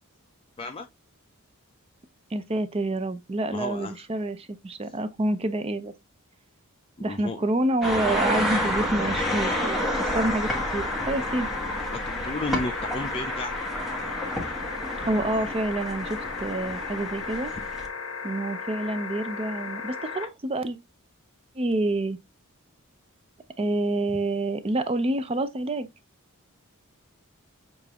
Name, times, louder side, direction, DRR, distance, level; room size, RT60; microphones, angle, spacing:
voice 1, 2.3-5.9 7.0-11.5 15.0-17.5 18.2-20.8 21.6-22.2 23.6-25.9, right 2 dB, 25° right, 0.5 m, -28 dB
voice 2, 3.5-4.1 7.0-7.4 11.9-13.5, left 2 dB, 25° left, 0.4 m, -33 dB
sound 1, 7.8-17.9, equal, ahead, 1.2 m, -30 dB
sound 2, 9.0-20.3 21.7-21.8, left 5 dB, 65° left, 1.0 m, -36 dB
6.7 x 2.6 x 2.8 m
head